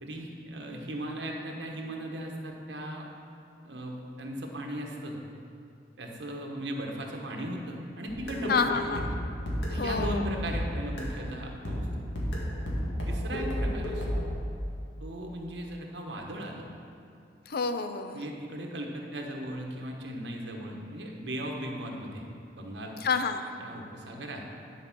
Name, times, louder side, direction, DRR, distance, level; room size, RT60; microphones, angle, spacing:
voice 1, 0.0-3.1 3.6-5.2 6.0-9.2 9.7-11.9 12.2-12.3 13.1-14.2 15.0-16.7 18.1-22.3 22.5-23.1 23.6-24.7, right 1 dB, 70° right, 1 dB, 1.2 m, -37 dB
sound 1, 8.1-11.3 11.7-14.3, equal, 80° left, 1.9 m, -32 dB
voice 2, 8.5-9.0 9.8-10.2 17.5-18.2 23.0-23.5, left 5 dB, 55° left, 9 dB, 0.5 m, -28 dB
10.5 x 4.9 x 5.9 m, 2.5 s
head